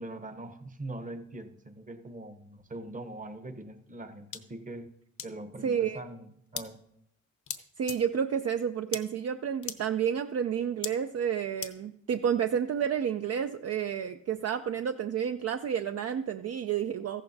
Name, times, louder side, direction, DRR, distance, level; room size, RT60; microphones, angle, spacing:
voice 1, 0.0-4.9 5.2-6.8, right 2 dB, 25° right, 8 dB, 0.8 m, -42 dB
sound 1, 4.3-4.4 5.2-5.3 6.5-6.6 7.5-7.6 7.9-8.0 8.9-9.0 9.6-9.8 10.8-10.9 11.6-11.7, left 8 dB, 75° left, 0.8 m, -35 dB
voice 2, 5.6-6.0 7.8-17.2, right 8 dB, 55° right, 8 dB, 0.4 m, -30 dB
14.5 x 11.5 x 2.7 m, 0.78 s
wide cardioid pair, 135°, 30 cm